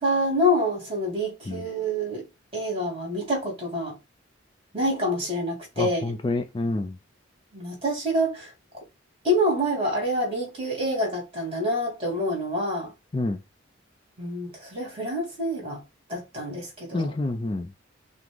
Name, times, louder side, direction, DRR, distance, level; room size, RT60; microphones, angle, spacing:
voice 1, 0.0-2.3 2.5-4.0 4.7-6.2 7.5-8.5 9.2-12.9 14.2-15.8 16.1-17.2, equal, 25° right, 2.3 m, -27 dB
voice 2, 5.8-6.9 13.1-13.4 16.9-17.7, left 2 dB, 25° left, 0.3 m, -27 dB
5.9 x 2.0 x 3.7 m
head